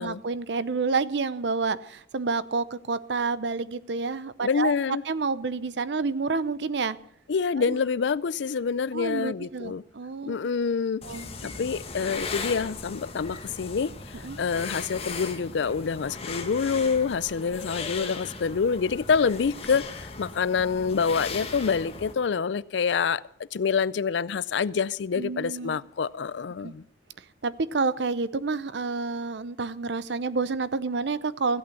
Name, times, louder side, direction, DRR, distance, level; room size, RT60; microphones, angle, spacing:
voice 1, 0.0-7.0 7.7-7.8 8.9-10.4 11.0-11.3 14.2-14.4 25.2-25.8 26.6-26.7 27.2-31.6, right 4 dB, 70° right, 16 dB, 0.7 m, -29 dB
voice 2, 4.4-5.0 7.3-9.8 10.3-23.2 23.5-26.8, left 5 dB, 75° left, 20 dB, 0.4 m, -27 dB
sound 1, 11.0-22.1, left 4 dB, 35° left, 1.5 m, -38 dB
15.0 x 8.6 x 7.1 m, 0.74 s
head